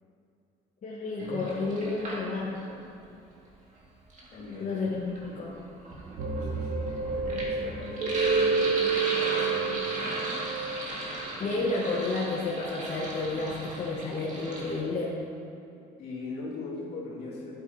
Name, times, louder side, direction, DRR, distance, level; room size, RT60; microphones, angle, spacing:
voice 1, 0.8-2.7 4.6-5.5 11.4-15.2, left 3 dB, 50° left, -5 dB, 1.3 m, -31 dB
Sink (filling or washing), 1.2-2.7 3.9-14.8, right 1 dB, 45° right, 1.9 m, -37 dB
voice 2, 4.3-4.8 6.4-10.0 11.5-11.6 16.0-17.6, left 3 dB, 75° left, -5 dB, 2.2 m, -40 dB
sound 1, 6.2-11.2, right 5 dB, 85° right, 1.1 m, -29 dB
11.5 x 8.3 x 2.8 m, 2.5 s
cardioid pair, 110°, 17 cm